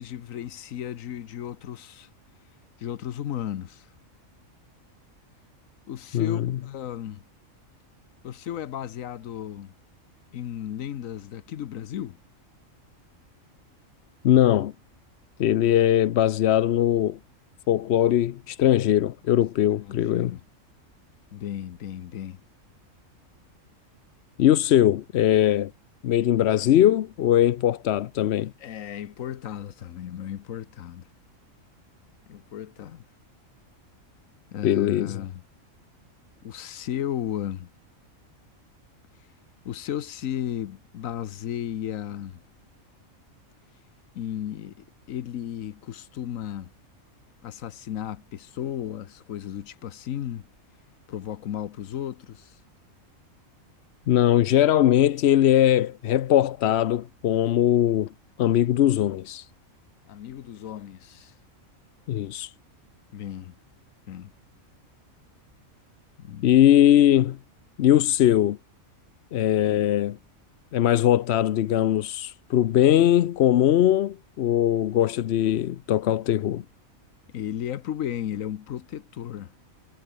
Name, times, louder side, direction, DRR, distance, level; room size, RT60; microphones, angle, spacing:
voice 1, 0.0-2.1 2.8-3.9 5.9-7.2 8.2-9.7 10.3-12.2 19.8-20.4 21.3-22.4 28.6-31.0 32.3-33.0 34.5-35.4 36.4-37.7 39.6-42.4 44.1-46.7 47.4-50.5 51.1-52.6 60.1-61.3 63.1-63.5 64.1-64.3 66.2-66.5 77.3-79.5, left 10 dB, 80° left, 1.2 m, -34 dB
voice 2, 6.1-6.5 14.2-14.7 15.4-17.2 17.7-20.3 24.4-25.7 26.0-28.5 34.6-35.2 54.1-58.1 58.4-59.5 62.1-62.5 66.4-67.4 67.8-68.6 69.3-70.2 70.7-76.6, left 11 dB, 60° left, 0.8 m, -20 dB
omnidirectional pair, 1.4 m